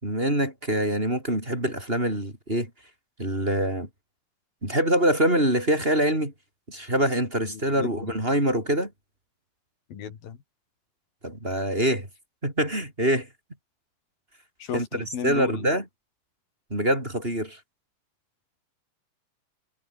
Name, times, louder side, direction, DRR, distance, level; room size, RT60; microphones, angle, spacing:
voice 1, 0.0-2.7 3.2-3.9 4.6-6.3 6.7-8.9 11.2-12.1 12.4-13.3 14.7-15.9 16.7-17.6, right 1 dB, 15° right, 6.3 m, -25 dB
voice 2, 7.5-7.9 9.9-10.4 14.6-15.7, left 8 dB, 85° left, 4.6 m, -34 dB
omnidirectional pair, 4.0 m